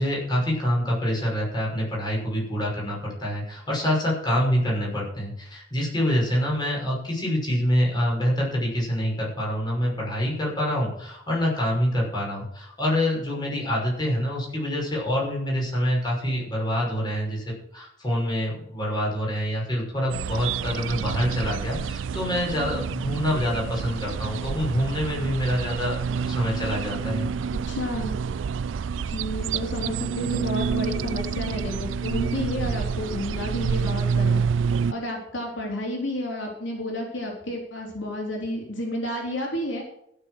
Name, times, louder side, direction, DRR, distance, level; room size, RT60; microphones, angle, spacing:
voice 1, 0.0-27.3, equal, 25° left, -3 dB, 6.0 m, -26 dB
sound 1, 20.1-34.9, right 6 dB, 90° right, 0.4 m, -28 dB
voice 2, 27.7-28.1 29.0-34.4 34.9-39.8, left 1 dB, 80° left, -1 dB, 4.1 m, -31 dB
15.5 x 7.0 x 6.4 m, 0.76 s
head